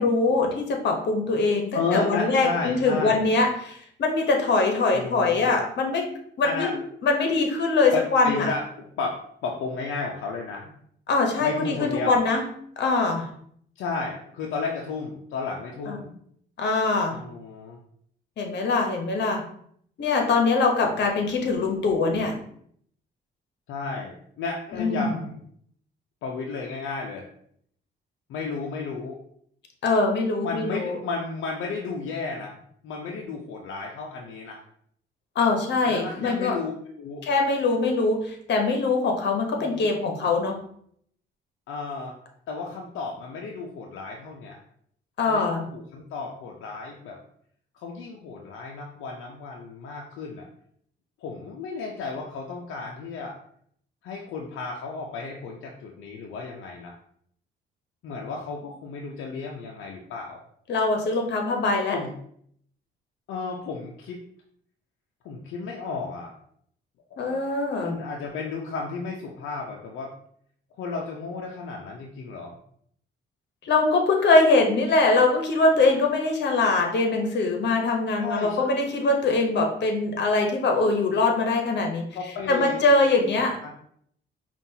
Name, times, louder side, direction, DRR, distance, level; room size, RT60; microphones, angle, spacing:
voice 1, 0.0-6.1 6.4-6.7 7.0-8.5 11.1-12.5 12.8-13.3 15.9-16.0 16.6-17.2 18.4-19.4 20.0-22.4 24.8-25.2 29.8-31.0 35.3-36.5 37.2-40.5 45.2-45.6 60.7-61.9 67.2-68.0 73.6-82.1 82.5-83.6, left 3 dB, 60° left, 3 dB, 1.0 m, -23 dB
voice 2, 1.7-3.3 4.9-5.5 6.4-6.8 7.9-10.7 11.4-12.2 13.8-16.1 17.1-17.8 20.8-21.0 23.7-25.3 26.2-27.3 28.3-29.2 30.4-34.6 35.8-36.7 37.0-37.3 39.6-39.9 41.7-42.1 42.5-44.6 45.3-47.2 47.7-50.5 51.2-53.4 54.0-56.9 58.0-60.4 61.9-62.1 63.3-64.2 65.2-66.3 67.8-70.1 70.8-72.5 78.2-78.7 82.1-82.8 83.6-83.7, left 4 dB, 80° left, 0 dB, 0.6 m, -33 dB
5.3 x 2.5 x 2.8 m, 0.66 s
cardioid pair, 90°, 20 cm